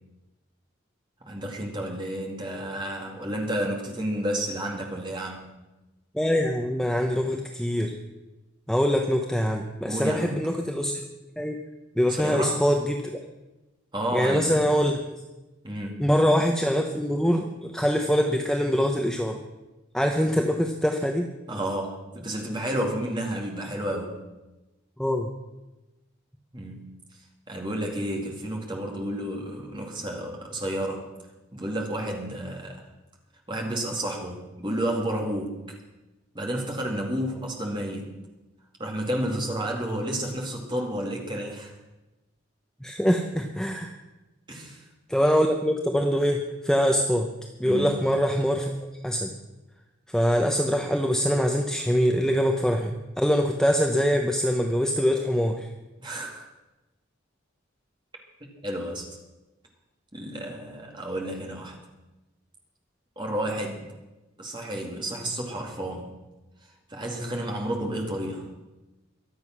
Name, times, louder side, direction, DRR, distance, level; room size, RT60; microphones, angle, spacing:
voice 1, 1.2-5.5 9.8-10.5 12.1-12.6 13.9-14.6 15.6-16.1 20.2-20.3 21.5-24.2 26.5-27.0 27.5-31.1 31.5-32.8 33.5-35.6 36.3-38.2 38.8-41.7 44.5-44.9 47.6-48.1 56.0-56.5 58.4-59.1 60.1-61.8 63.2-63.9 64.4-66.1 66.9-68.5, right 1 dB, 20° right, 1 dB, 2.4 m, -31 dB
voice 2, 6.1-7.9 8.7-10.9 11.4-11.6 12.0-13.2 14.1-15.2 16.0-19.4 19.9-21.3 25.0-25.3 42.8-44.0 45.1-47.3 47.6-48.7 49.0-49.3 50.1-55.7, equal, 5° left, 3 dB, 0.8 m, -24 dB
23.0 x 7.8 x 6.1 m, 1.1 s
head